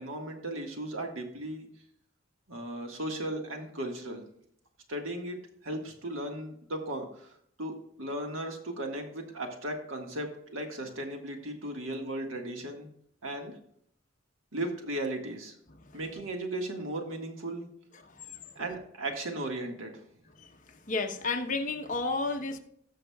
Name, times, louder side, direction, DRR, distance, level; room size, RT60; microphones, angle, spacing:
voice 1, 0.0-1.7 2.5-4.2 4.9-5.4 5.6-7.3 7.6-12.9 13.2-13.5 14.5-15.5 15.9-17.7 18.5-20.0, right 1 dB, 80° right, 3 dB, 1.7 m, -36 dB
voice 2, 20.9-22.6, left 3 dB, 40° left, 4 dB, 0.9 m, -31 dB
17.5 x 6.5 x 2.3 m, 0.68 s
head